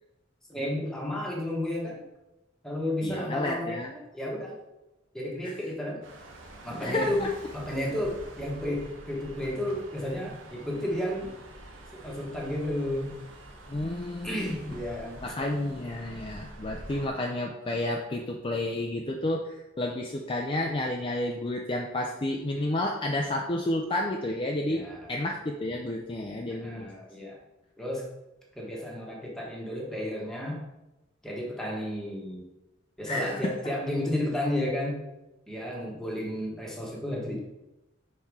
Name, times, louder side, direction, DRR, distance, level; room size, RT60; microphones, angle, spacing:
voice 1, 0.5-2.0 2.6-4.5 5.1-6.0 6.6-7.3 7.5-11.3 12.0-13.2 14.2-15.2 24.7-25.1 26.6-27.4 27.8-28.1 28.5-30.6 31.2-32.4 33.0-35.0 35.5-37.4, left 1 dB, 5° left, -3 dB, 1.3 m, -32 dB
voice 2, 3.0-3.9 5.4-5.5 6.7-7.3 13.7-14.5 15.2-26.9 33.1-33.7, left 1 dB, 25° left, 1 dB, 0.5 m, -31 dB
sound 1, 6.0-17.1, right 1 dB, 85° right, 1.1 m, -47 dB
5.7 x 4.2 x 4.7 m, 0.97 s
head